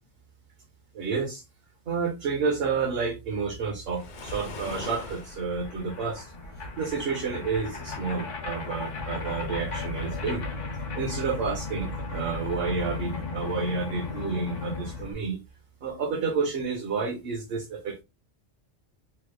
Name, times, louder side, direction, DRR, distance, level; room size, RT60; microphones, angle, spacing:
voice 1, 0.9-1.4 1.9-6.3 6.8-10.4 11.0-15.4 15.8-18.0, right 5 dB, 60° right, 0.8 m, -30 dB
Waves surf, 3.9-5.4, left 3 dB, 50° left, 0.6 m, -39 dB
sound 1, 4.0-4.1 4.3-15.1, left 3 dB, 85° left, 1.2 m, -36 dB
3.2 x 2.1 x 3.1 m
omnidirectional pair, 1.3 m